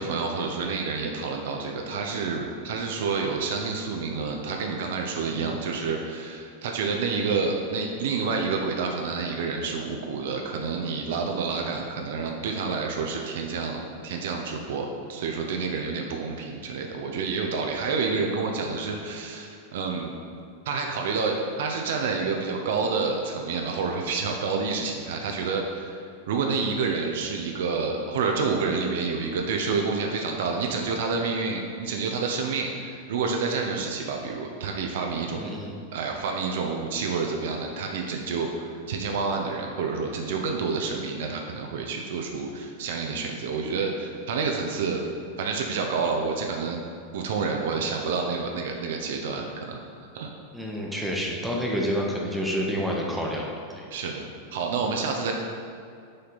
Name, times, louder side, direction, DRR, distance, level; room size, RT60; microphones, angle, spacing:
voice 1, 0.0-20.1 20.7-35.5 35.9-45.0 45.4-46.8 47.1-50.3 53.9-54.2 54.5-55.3, right 4 dB, 55° right, 2 dB, 0.6 m, -29 dB
voice 2, 5.3-5.6 35.3-35.8 50.5-53.8, equal, 5° right, -2 dB, 0.9 m, -29 dB
6.4 x 4.3 x 4.0 m, 2.3 s
figure-of-eight pair, 90°, 0 cm